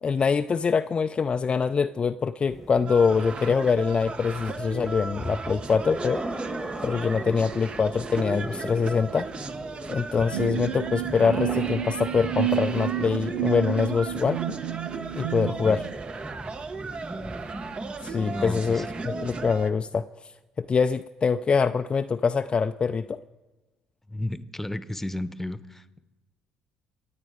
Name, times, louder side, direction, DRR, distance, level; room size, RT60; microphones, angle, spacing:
voice 1, 0.0-6.2 6.8-9.3 9.9-14.6 15.2-15.8 18.0-20.1 20.6-23.2, left 5 dB, 35° left, 9 dB, 0.4 m, -24 dB
sound 1, 2.5-19.7, right 1 dB, 10° right, 1.5 m, -39 dB
sound 2, 2.9-19.7, right 4 dB, 40° right, 1.0 m, -37 dB
sound 3, 10.3-15.9, right 14 dB, 85° right, 0.4 m, -30 dB
voice 2, 15.4-15.8 18.3-19.0 24.1-26.0, left 1 dB, 10° left, 14 dB, 1.0 m, -34 dB
26.0 x 8.9 x 5.0 m, 1.2 s
hypercardioid pair, 60°, 3 cm